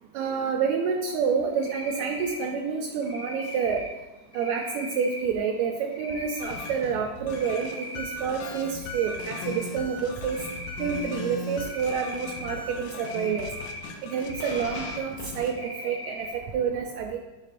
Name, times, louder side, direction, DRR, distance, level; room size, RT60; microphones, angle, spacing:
voice 1, 0.2-3.8 4.4-10.4 10.8-13.5 14.0-16.3 16.5-17.2, right 6 dB, 80° right, 2 dB, 1.8 m, -28 dB
Cricket, 1.6-2.5 3.0-3.9 4.3-5.2 5.9-6.7 7.2-8.1 8.5-9.7 10.3-11.1 11.6-12.5 13.0-13.8 14.2-15.0 15.5-16.3, left 1 dB, 30° right, 1.5 m, -39 dB
sound 1, 6.4-15.5, left 2 dB, 80° left, 1.3 m, -38 dB
9.6 x 4.8 x 2.5 m, 1.0 s
omnidirectional pair, 3.5 m